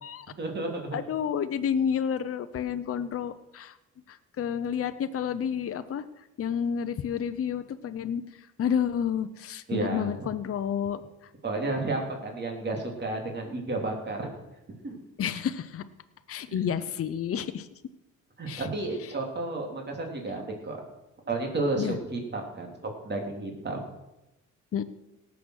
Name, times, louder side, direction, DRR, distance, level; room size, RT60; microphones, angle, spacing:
voice 1, 0.4-1.0 9.7-10.1 11.4-14.3 14.8-15.0 16.5-16.7 18.4-20.8 21.3-22.7 23.0-23.8, right 2 dB, 35° right, 1 dB, 3.2 m, -32 dB
voice 2, 0.9-3.7 4.1-6.0 6.4-8.2 8.6-11.0 15.2-15.8 16.3-17.7 18.5-18.7 21.8-22.0 24.7-24.8, left 8 dB, 50° left, 10 dB, 0.8 m, -30 dB
17.5 x 7.1 x 6.4 m, 0.95 s
cardioid pair, 90°, 30 cm